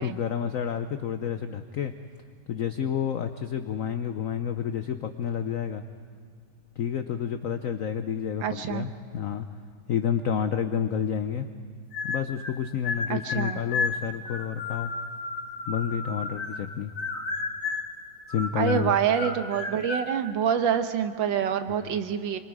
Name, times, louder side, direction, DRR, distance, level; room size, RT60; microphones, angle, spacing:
voice 1, 0.0-1.9 2.5-5.8 6.8-9.5 9.9-11.5 12.0-14.9 15.7-16.9 18.3-18.9 21.7-22.0, left 8 dB, 85° left, 9 dB, 0.7 m, -30 dB
voice 2, 8.4-8.9 13.1-13.6 18.6-22.4, right 8 dB, 65° right, 8 dB, 1.7 m, -26 dB
sound 1, 11.9-12.5 12.8-16.7 17.0-17.9 18.3-20.1, left 4 dB, 40° left, 2.1 m, -32 dB
27.0 x 24.5 x 4.8 m, 2.1 s
omnidirectional pair, 2.3 m